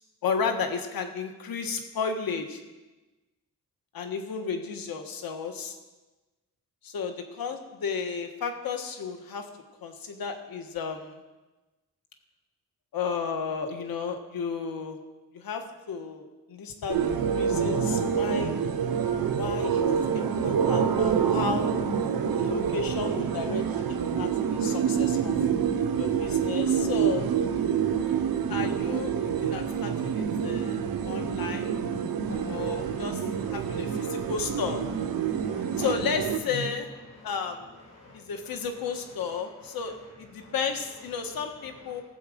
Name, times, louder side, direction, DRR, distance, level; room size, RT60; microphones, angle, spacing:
voice 1, 0.2-2.6 3.9-5.8 6.8-9.5 9.8-11.2 12.9-15.0 15.3-18.6 19.3-19.8 20.1-21.7 22.3-25.3 26.0-27.3 28.5-30.8 31.0-31.7 32.5-33.2 33.5-34.8 35.8-36.9 37.2-37.7 38.1-42.0, left 5 dB, 85° left, 5 dB, 1.5 m, -33 dB
sound 1, 16.9-36.4, right 7 dB, 85° right, 1.0 m, -27 dB
voice 2, 32.3-34.6 35.1-35.9 36.5-36.7 37.0-37.4 37.7-38.7 39.3-40.1 40.3-40.5 41.2-42.0, left 1 dB, 45° left, -3 dB, 2.2 m, -47 dB
18.0 x 7.3 x 5.1 m, 1.1 s
cardioid pair, 95°, 35 cm